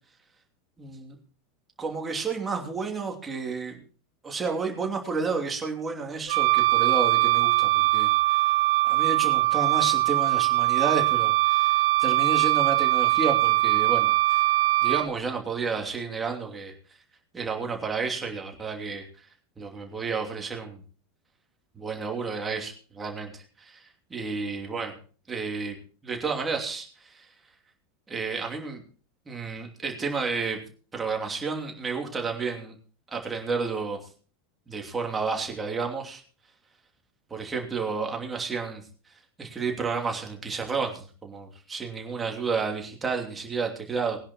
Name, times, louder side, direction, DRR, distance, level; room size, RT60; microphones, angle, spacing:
voice 1, 0.8-1.2 1.8-3.8 4.2-8.5 8.8-14.4 14.8-16.7 17.3-19.3 19.6-20.8 21.7-24.9 25.3-25.8 26.0-27.3 28.1-28.8 29.3-30.6 30.9-32.7 33.1-34.0 34.7-36.2 37.3-38.8 39.4-44.2, right 4 dB, 15° right, 2 dB, 2.9 m, -31 dB
Wind instrument woodwind instrument, 6.3-15.1, right 18 dB, 55° right, 0.7 m, -22 dB
20.5 x 10.5 x 3.1 m, 0.40 s
figure-of-eight pair, 85°, 0 cm